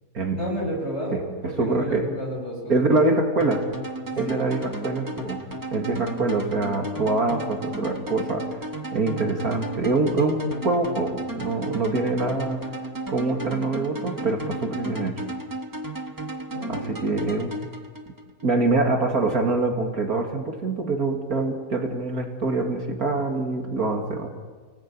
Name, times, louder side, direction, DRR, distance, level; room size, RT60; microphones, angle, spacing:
voice 1, 0.3-2.9 4.1-4.4 16.5-16.8, equal, 40° left, -1 dB, 8.5 m, -31 dB
voice 2, 1.6-2.1 2.7-3.6 4.2-5.4 5.7-8.5 8.9-12.6 13.1-15.2 16.7-17.6 18.4-24.3, right 3 dB, 55° right, 3 dB, 2.8 m, -24 dB
sound 1, 3.4-18.5, right 1 dB, 10° right, 1.4 m, -34 dB
30.0 x 18.5 x 8.7 m, 1.5 s
omnidirectional pair, 1.8 m